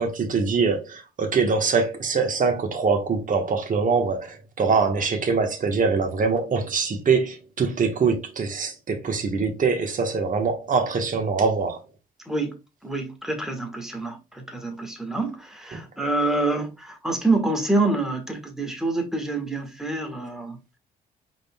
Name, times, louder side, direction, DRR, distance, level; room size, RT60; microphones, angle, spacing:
voice 1, 0.0-11.8 15.7-15.8, right 4 dB, 40° right, 1.2 m, -23 dB
voice 2, 12.2-20.8, right 2 dB, ahead, 1.5 m, -27 dB
5.2 x 3.8 x 2.3 m
cardioid pair, 90°, 20 cm